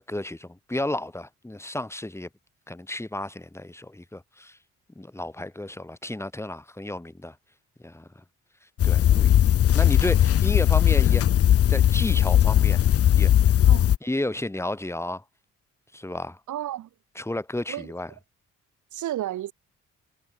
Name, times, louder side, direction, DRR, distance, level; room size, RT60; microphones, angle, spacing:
voice 1, 0.0-2.3 2.7-4.6 5.0-7.3 7.8-8.2 8.8-9.4 9.7-11.2 11.7-12.8 13.1-13.3 14.0-15.2 15.9-16.4 17.2-18.1, left 1 dB, 10° left, 2.9 m, -32 dB
sound 1, 8.8-14.0, left 11 dB, 50° left, 0.7 m, -18 dB
voice 2, 16.5-16.9 17.7-17.9 18.9-19.5, right 13 dB, 75° right, 2.8 m, -32 dB
cardioid pair, 90°, 30 cm